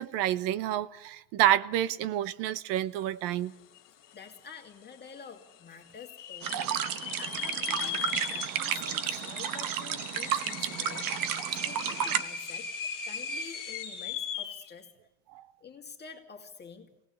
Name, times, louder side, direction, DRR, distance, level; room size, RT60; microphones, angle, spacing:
voice 1, 0.0-3.5 15.3-15.4, right 12 dB, 75° right, 1.1 m, -28 dB
sound 1, 3.8-3.9 4.1-4.7 5.2-5.3 6.0-14.7, left 7 dB, 45° left, 2.4 m, -38 dB
voice 2, 4.1-11.4 11.6-12.7 13.0-14.9 15.6-16.9, left 6 dB, 25° left, 2.4 m, -48 dB
sound 2, 6.4-12.2, right 10 dB, 50° right, 1.1 m, -32 dB
26.0 x 18.5 x 7.0 m
cardioid pair, 145°, 43 cm